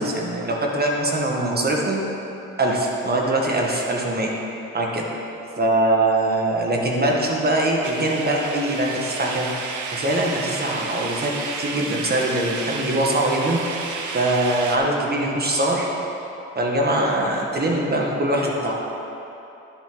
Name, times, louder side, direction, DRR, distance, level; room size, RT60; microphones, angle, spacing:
voice 1, 0.0-2.0 2.6-4.3 4.7-5.0 5.6-9.5 9.9-13.6 14.1-15.8 16.5-18.7, right 1 dB, 30° right, -1 dB, 1.6 m, -22 dB
sound 1, 7.8-14.8, right 4 dB, 75° right, 0.9 m, -32 dB
11.0 x 7.6 x 3.9 m, 3.0 s
cardioid pair, 90°, 30 cm